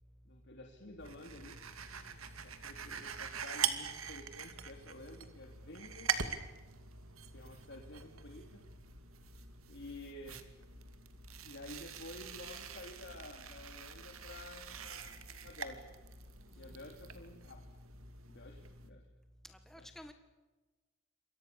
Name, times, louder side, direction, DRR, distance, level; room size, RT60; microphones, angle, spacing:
voice 1, 0.2-1.6 2.4-6.1 7.3-8.7 9.7-10.4 11.4-15.8 16.6-17.6 18.3-19.1 19.8-19.9, left 2 dB, 60° left, 2 dB, 3.1 m, -51 dB
sound 1, 1.0-18.9, right 7 dB, 90° right, 2.5 m, -43 dB
voice 2, 16.5-16.9 19.4-20.1, equal, ahead, 7 dB, 1.6 m, -54 dB
28.5 x 23.5 x 7.0 m, 1.2 s
head